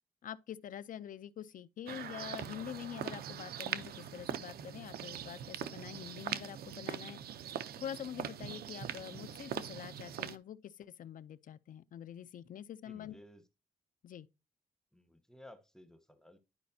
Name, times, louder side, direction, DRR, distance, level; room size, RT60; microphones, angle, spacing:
voice 1, 0.2-7.2 7.8-13.1 14.0-14.3, left 10 dB, 60° left, 0.5 m, -46 dB
sound 1, 1.9-10.4, right 9 dB, 85° right, 0.6 m, -42 dB
voice 2, 12.8-13.5 14.9-16.4, left 1 dB, 5° left, 1.0 m, -56 dB
10.5 x 5.1 x 2.7 m
wide cardioid pair, 135°, 16 cm